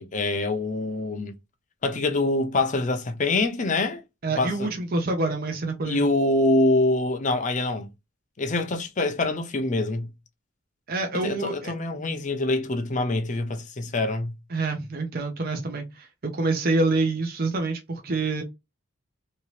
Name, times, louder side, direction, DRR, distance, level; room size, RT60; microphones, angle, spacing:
voice 1, 0.0-1.3 1.8-4.0 4.4-4.7 5.9-7.9 8.4-10.1 11.2-14.3, left 2 dB, 35° left, 0.5 m, -25 dB
voice 2, 4.2-6.1 10.9-11.7 14.5-18.4, right 3 dB, 45° right, 0.6 m, -27 dB
2.9 x 2.8 x 3.0 m
head